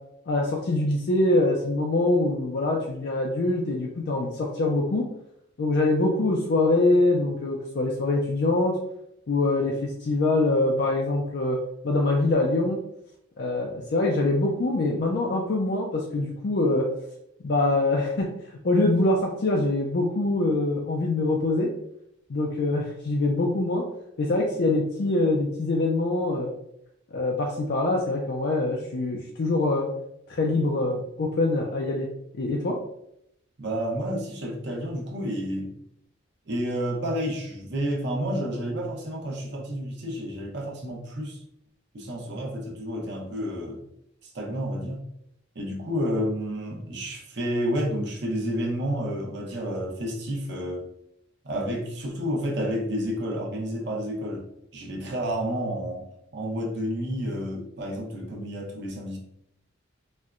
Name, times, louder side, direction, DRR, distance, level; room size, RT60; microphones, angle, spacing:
voice 1, 0.3-5.1 5.6-8.8 9.3-11.6 11.8-12.8 13.4-16.9 17.4-18.3 18.6-21.7 22.3-23.8 24.2-26.5 27.1-29.9 30.3-32.1 32.3-32.8, left 2 dB, 55° left, -1 dB, 0.4 m, -24 dB
voice 2, 33.6-35.8 36.5-41.4 41.9-43.8 44.2-45.0 45.5-50.8 51.4-54.5 54.7-56.1 56.3-59.2, equal, 60° right, -1 dB, 0.8 m, -30 dB
4.2 x 2.2 x 2.4 m, 0.77 s
head